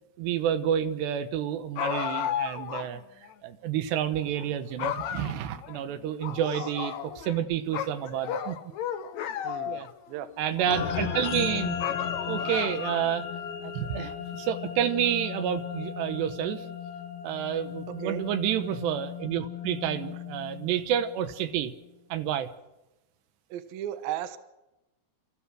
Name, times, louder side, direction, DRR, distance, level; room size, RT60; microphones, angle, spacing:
voice 1, 0.2-3.0 3.4-8.6 9.7-9.9 10.4-11.8 12.3-13.3 13.6-16.7 17.2-21.7 22.1-22.5, right 10 dB, 85° right, 10 dB, 3.3 m, -29 dB
sound 1, 1.8-2.9 3.3-3.4 4.2-4.5 4.8-5.8 6.2-7.4 7.7-10.0 10.5-11.3 11.8-13.1, left 9 dB, 70° left, 1.8 m, -33 dB
voice 2, 9.4-10.3 18.0-18.3 23.5-24.4, right 11 dB, 70° right, 11 dB, 2.6 m, -35 dB
sound 2, 10.6-21.3, left 8 dB, 85° left, 3.6 m, -36 dB
30.0 x 14.0 x 6.3 m, 0.95 s
omnidirectional pair, 4.8 m